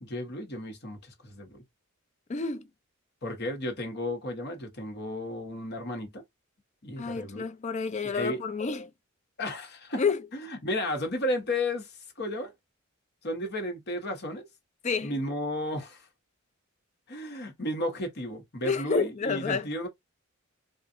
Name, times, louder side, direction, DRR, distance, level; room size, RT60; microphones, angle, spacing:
voice 1, 0.0-1.6 3.2-6.2 6.8-7.4 8.0-8.4 9.4-10.0 10.3-12.5 13.2-14.5 15.0-16.1 17.1-19.9, left 1 dB, 50° left, 1.1 m, -33 dB
voice 2, 2.3-2.7 7.0-8.9 10.0-10.2 14.8-15.1 18.6-19.7, left 5 dB, 35° left, 0.4 m, -29 dB
3.6 x 2.4 x 2.6 m
head